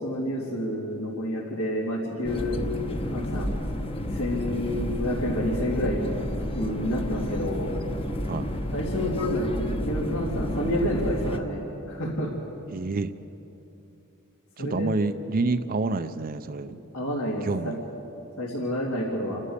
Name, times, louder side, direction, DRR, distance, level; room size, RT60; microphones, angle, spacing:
voice 1, 0.0-2.6 3.1-3.5 4.1-6.0 6.5-7.7 8.7-11.6 11.9-12.3 14.6-14.9 16.9-17.7 18.4-19.4, equal, 75° left, -5 dB, 3.3 m, -29 dB
sound 1, 2.2-11.4, left 1 dB, 25° left, 1.1 m, -31 dB
voice 2, 12.7-13.1 14.6-16.8 17.4-17.8, right 3 dB, 40° right, 10 dB, 0.6 m, -28 dB
29.5 x 13.0 x 8.3 m, 2.9 s
head